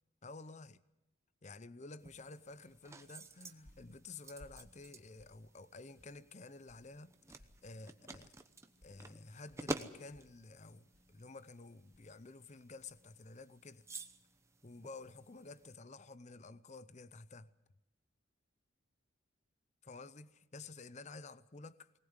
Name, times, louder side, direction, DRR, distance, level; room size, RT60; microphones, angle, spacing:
voice 1, 0.2-0.8 1.4-8.3 8.8-13.8 14.6-17.5 19.8-21.9, left 3 dB, 35° left, 0.7 m, -52 dB
sound 1, 2.0-15.7, right 2 dB, 15° right, 0.9 m, -50 dB
sound 2, 3.2-13.2, left 1 dB, 75° left, 3.4 m, -67 dB
20.5 x 19.5 x 8.1 m
head